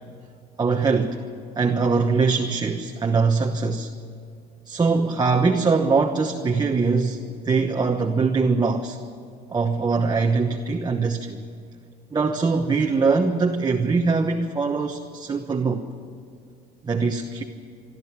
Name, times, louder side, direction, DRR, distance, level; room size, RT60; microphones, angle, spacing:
voice 1, 0.6-1.2 1.6-3.9 4.7-9.0 9.5-11.4 12.1-15.8 16.8-17.4, right 4 dB, 25° right, 3 dB, 1.1 m, -22 dB
23.5 x 12.5 x 8.9 m, 2.3 s
cardioid pair, 110°, 17 cm